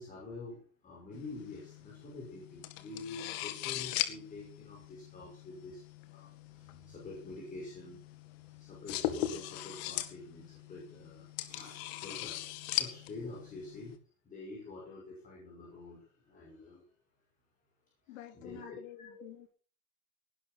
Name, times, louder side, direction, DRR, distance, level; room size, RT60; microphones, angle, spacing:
voice 1, 0.0-5.8 6.1-8.0 8.6-12.4 12.8-14.0 14.3-16.8 18.1-18.8 19.1-19.2, left 3 dB, 20° left, -3 dB, 5.8 m, -47 dB
sound 1, 1.1-14.0, left 14 dB, 55° left, 2.2 m, -40 dB
voice 2, 18.1-19.5, left 14 dB, 80° left, 8 dB, 3.0 m, -50 dB
19.0 x 11.5 x 4.5 m, 0.40 s
supercardioid pair, 170°, 39 cm